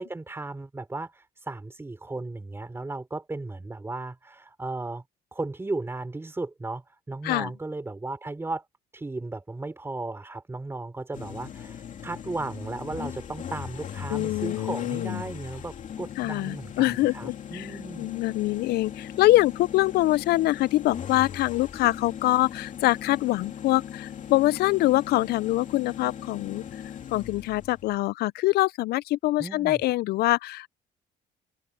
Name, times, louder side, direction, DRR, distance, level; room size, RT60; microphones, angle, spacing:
voice 1, 0.0-5.0 5.3-8.7 8.9-18.1 29.4-29.8, right 2 dB, 15° right, 3.6 m, -35 dB
sound 1, 11.1-28.0, left 8 dB, 50° left, 2.7 m, -39 dB
voice 2, 14.1-15.2 16.2-17.7 18.0-26.6 27.1-30.7, left 17 dB, 70° left, 0.4 m, -24 dB
open air
cardioid pair, 110°, 17 cm